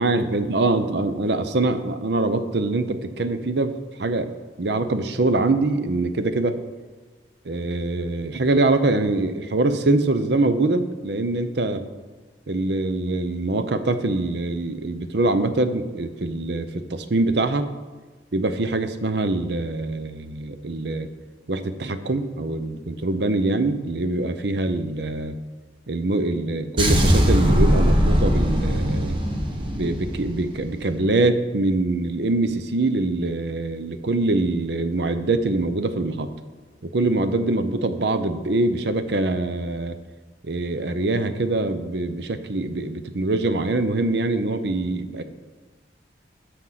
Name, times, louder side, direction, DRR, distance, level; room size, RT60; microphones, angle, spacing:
voice 1, 0.0-3.7 4.0-4.3 4.6-6.6 7.4-11.8 12.5-17.7 18.3-21.1 21.5-25.3 25.9-29.2 29.7-36.3 36.8-40.0 40.4-45.2, right 2 dB, 65° right, 10 dB, 0.7 m, -24 dB
sound 1, 26.8-30.9, equal, 25° right, 1.2 m, -20 dB
13.0 x 6.1 x 4.1 m, 1.3 s
head